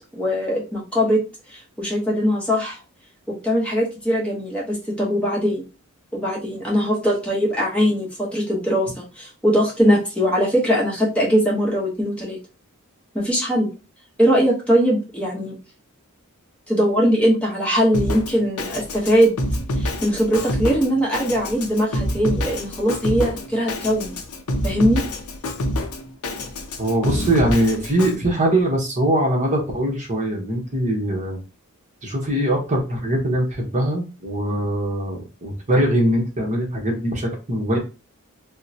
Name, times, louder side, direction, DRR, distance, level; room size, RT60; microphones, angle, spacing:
voice 1, 0.1-1.2 1.5-2.8 3.4-5.6 6.1-12.4 13.1-13.7 14.2-15.6 16.7-19.3 19.8-24.2 24.6-25.0, equal, 5° left, -4 dB, 1.0 m, -21 dB
Drum kit, 17.9-28.1, left 1 dB, 80° left, 0.6 m, -27 dB
voice 2, 26.8-31.4 32.0-37.8, right 1 dB, 35° right, 0 dB, 0.9 m, -22 dB
3.6 x 2.1 x 2.7 m, 0.31 s
head